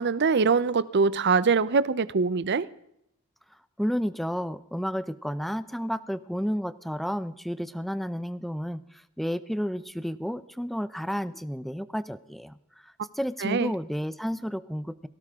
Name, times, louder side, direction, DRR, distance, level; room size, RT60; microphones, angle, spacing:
voice 1, 0.0-2.7 13.4-13.7, right 5 dB, 55° right, 0.6 m, -23 dB
voice 2, 3.8-15.1, equal, ahead, 0.6 m, -31 dB
19.5 x 17.0 x 3.7 m
head